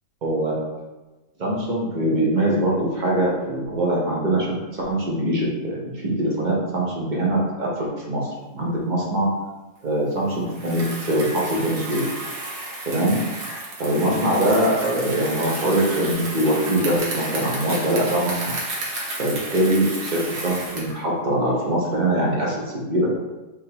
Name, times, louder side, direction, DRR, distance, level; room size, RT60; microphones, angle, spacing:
voice 1, 0.2-0.6 1.4-4.6 4.9-8.3 8.5-9.3 9.8-12.0 12.8-13.2 13.8-18.5 19.2-23.2, right 1 dB, 35° right, -4 dB, 1.0 m, -22 dB
Bicycle, 10.5-21.0, right 2 dB, 80° right, 1.6 m, -32 dB
5.5 x 3.2 x 2.9 m, 1.1 s
omnidirectional pair, 1.7 m